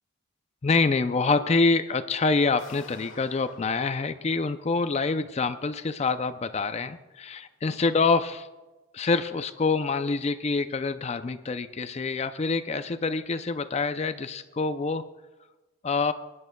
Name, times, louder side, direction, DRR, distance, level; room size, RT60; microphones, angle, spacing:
voice 1, 0.6-8.5 8.9-15.0 15.8-16.1, left 4 dB, 30° left, 11 dB, 0.4 m, -26 dB
sound 1, 2.6-5.4, left 3 dB, 65° left, 1.6 m, -50 dB
22.5 x 11.0 x 2.2 m, 1.1 s
head